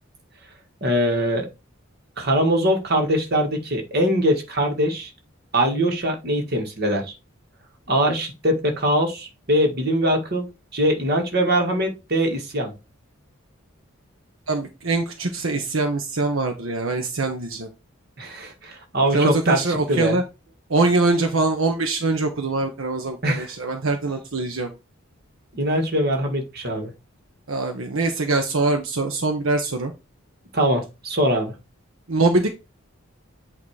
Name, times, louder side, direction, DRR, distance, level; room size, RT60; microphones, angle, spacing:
voice 1, 0.8-1.5 2.2-5.1 5.5-7.1 7.9-10.5 10.7-12.7 18.2-20.2 23.2-23.5 25.5-26.9 30.5-31.5, equal, 50° right, 3 dB, 1.7 m, -22 dB
voice 2, 14.5-17.7 19.1-20.2 20.7-24.7 27.5-29.9 32.1-32.5, right 3 dB, 75° right, 4 dB, 0.9 m, -23 dB
8.5 x 2.9 x 4.8 m, 0.27 s
head